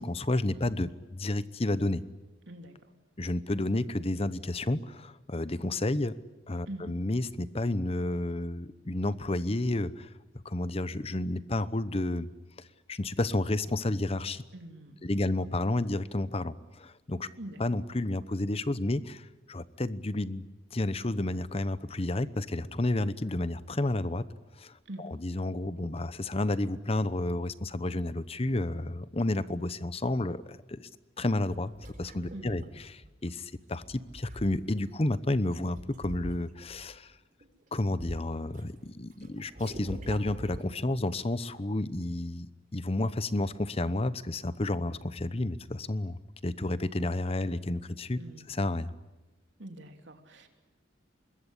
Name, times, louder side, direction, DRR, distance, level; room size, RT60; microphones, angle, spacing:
voice 1, 0.0-2.0 3.2-6.1 6.5-10.1 10.4-12.3 12.9-14.4 15.0-17.3 17.6-24.2 24.6-30.8 31.2-31.7 32.0-32.6 32.9-37.1 37.7-48.2 48.5-48.9, left 2 dB, 30° left, 15 dB, 0.9 m, -31 dB
voice 2, 14.5-15.3 17.4-17.6 24.8-25.1 32.3-32.8 48.2-48.5 49.6-50.5, right 1 dB, 70° right, 5 dB, 3.2 m, -44 dB
sound 1, 31.5-33.3 33.8-34.9 35.7-36.9 37.4-38.6 38.9-41.0, equal, 40° right, 4.0 m, -44 dB
25.0 x 21.5 x 10.0 m, 1.1 s
head